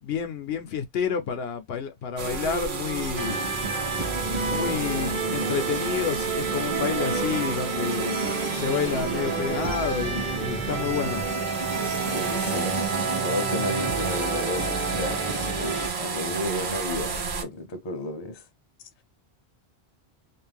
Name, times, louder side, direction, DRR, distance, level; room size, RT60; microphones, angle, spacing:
voice 1, 0.0-3.4 4.5-11.2, left 7 dB, 75° left, 0.8 m, -29 dB
sound 1, 2.2-17.4, right 5 dB, 85° right, 1.0 m, -32 dB
sound 2, 3.2-15.9, right 3 dB, 30° right, 0.8 m, -29 dB
voice 2, 4.7-5.2 12.1-12.8 13.2-18.4, left 2 dB, 35° left, 0.5 m, -33 dB
sound 3, 7.5-14.7, right 4 dB, 60° right, 1.1 m, -43 dB
2.5 x 2.1 x 3.3 m
omnidirectional pair, 1.1 m